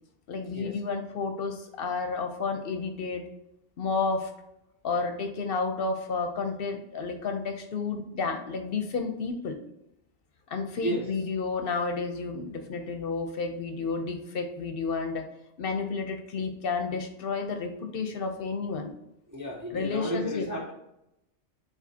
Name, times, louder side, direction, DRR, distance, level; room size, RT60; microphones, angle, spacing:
voice 1, 0.3-3.2 3.8-4.3 4.8-9.6 10.5-15.3 15.6-18.9 19.7-20.5, left 4 dB, 60° left, 6 dB, 0.8 m, -31 dB
voice 2, 19.3-20.7, equal, 25° right, 0 dB, 0.4 m, -32 dB
4.9 x 3.8 x 2.7 m, 0.83 s
omnidirectional pair, 1.2 m